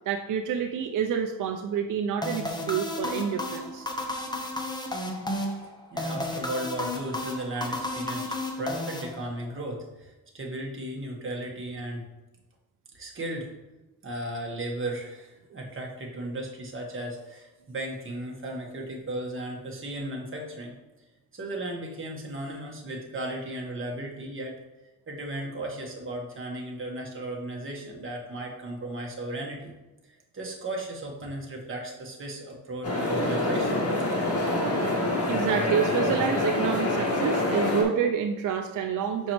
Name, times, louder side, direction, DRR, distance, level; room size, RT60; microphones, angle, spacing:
voice 1, 0.1-3.9 35.3-39.3, right 7 dB, 60° right, 5 dB, 0.5 m, -28 dB
sound 1, 2.2-9.6, left 1 dB, 10° left, 0.9 m, -33 dB
voice 2, 5.6-12.0 12.9-13.5 14.0-20.7 21.3-24.6 25.1-29.7 30.0-33.8, right 1 dB, 35° right, -1 dB, 1.3 m, -35 dB
sound 2, 32.8-37.8, left 2 dB, 40° left, 1.6 m, -26 dB
6.0 x 5.3 x 3.1 m, 1.0 s
cardioid pair, 95°, 36 cm